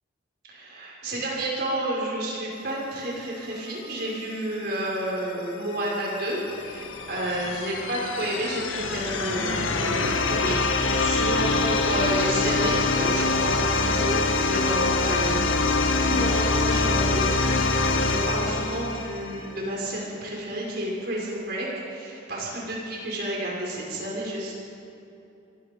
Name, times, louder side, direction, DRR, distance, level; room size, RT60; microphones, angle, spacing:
voice 1, 0.5-15.6 16.0-24.5, right 1 dB, 50° right, -4 dB, 5.9 m, -30 dB
sound 1, 5.7-19.5, left 3 dB, 80° left, 1.8 m, -25 dB
28.5 x 22.0 x 5.5 m, 2.8 s
head